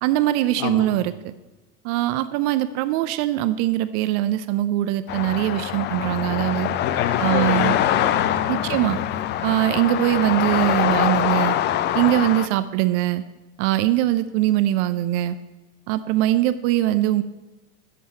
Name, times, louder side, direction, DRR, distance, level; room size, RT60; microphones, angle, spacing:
voice 1, 0.0-1.3 1.8-6.7 7.2-7.8 8.5-9.0 9.4-11.6 11.9-13.2 13.6-15.4 15.9-17.2, right 14 dB, 50° right, 14 dB, 0.6 m, -22 dB
sound 1, 5.1-12.5, left 11 dB, 25° left, 0.4 m, -23 dB
voice 2, 6.8-9.3, left 8 dB, 50° left, 8 dB, 1.5 m, -29 dB
15.5 x 7.7 x 4.4 m, 1.2 s
hypercardioid pair, 110°, 45 cm